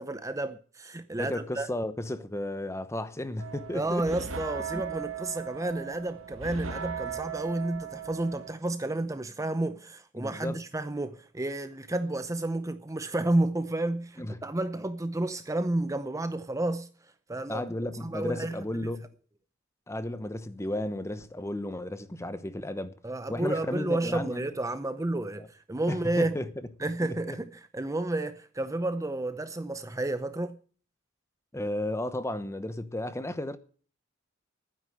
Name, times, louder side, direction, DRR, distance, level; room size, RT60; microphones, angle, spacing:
voice 1, 0.0-1.7 3.7-16.9 17.3-17.6 18.0-18.6 23.0-26.4 26.8-30.6, right 2 dB, 15° right, 0.6 m, -31 dB
voice 2, 1.2-4.2 4.7-4.8 10.2-10.6 14.2-14.4 17.5-19.1 19.9-22.9 23.3-24.5 25.9-26.5 27.0-27.4 31.5-33.6, left 1 dB, 15° left, 0.9 m, -34 dB
sound 1, 3.4-8.5, right 6 dB, 80° right, 1.3 m, -38 dB
12.0 x 9.8 x 7.7 m
head